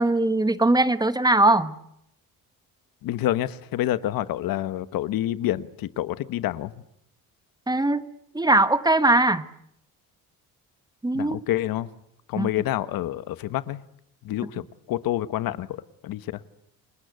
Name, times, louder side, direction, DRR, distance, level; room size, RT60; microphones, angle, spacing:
voice 1, 0.0-1.7 7.7-8.0 8.3-9.4 11.0-11.4 12.4-12.5, right 2 dB, 10° right, 12 dB, 1.3 m, -20 dB
voice 2, 3.0-6.7 11.1-11.9 12.3-13.8 14.2-16.4, left 13 dB, 80° left, 14 dB, 1.2 m, -28 dB
29.5 x 20.0 x 8.1 m, 0.77 s
cardioid pair, 115°, 34 cm